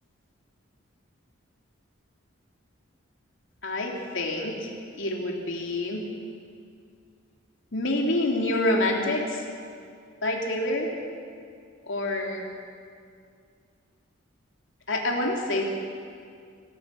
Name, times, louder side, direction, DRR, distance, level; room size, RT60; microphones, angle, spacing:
voice 1, 3.6-6.1 7.7-9.4 10.2-10.9 11.8-12.4 14.9-15.6, left 1 dB, 65° left, 0 dB, 3.4 m, -27 dB
25.5 x 15.5 x 7.8 m, 2.3 s
head